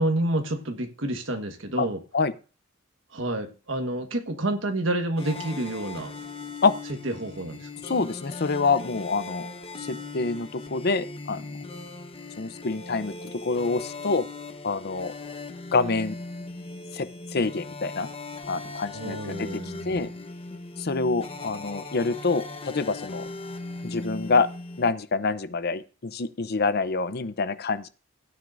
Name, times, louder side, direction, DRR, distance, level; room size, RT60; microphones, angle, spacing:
voice 1, 0.0-2.0 3.1-6.1 7.0-7.7 18.9-20.1, right 1 dB, 75° right, 1.5 m, -29 dB
sound 1, 5.2-24.9, left 3 dB, 30° left, 1.1 m, -39 dB
voice 2, 7.8-9.5 9.8-11.6 12.4-14.3 14.6-15.1 15.7-16.2 16.9-18.1 18.5-19.6 19.9-20.1 20.8-23.2 23.8-24.5 24.8-27.9, left 4 dB, 55° left, 0.7 m, -26 dB
16.5 x 9.4 x 2.6 m
head